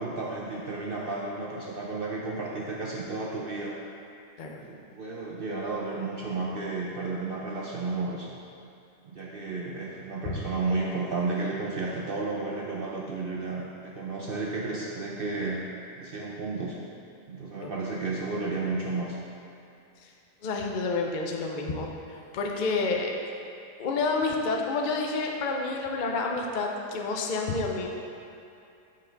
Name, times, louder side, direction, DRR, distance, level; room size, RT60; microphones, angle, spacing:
voice 1, 0.0-3.8 4.6-8.4 9.0-15.6 16.0-16.8 17.3-19.2, right 3 dB, 55° right, -3 dB, 0.6 m, -32 dB
voice 2, 20.4-23.1 23.8-27.9, left 3 dB, 55° left, 1 dB, 0.5 m, -29 dB
8.7 x 5.3 x 3.9 m, 2.6 s
omnidirectional pair, 1.6 m